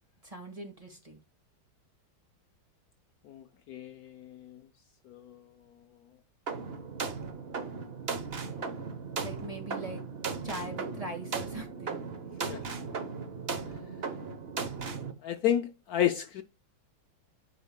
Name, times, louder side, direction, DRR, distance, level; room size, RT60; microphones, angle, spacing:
voice 1, 0.2-1.2 9.2-10.0 10.4-12.0, right 1 dB, 20° right, 1.5 m, -41 dB
voice 2, 3.2-4.6 5.1-5.5 12.5-12.6 15.2-16.4, left 11 dB, 90° left, 0.8 m, -31 dB
sound 1, 6.5-15.1, right 5 dB, 50° right, 0.7 m, -37 dB
12.5 x 5.0 x 2.2 m
omnidirectional pair, 2.3 m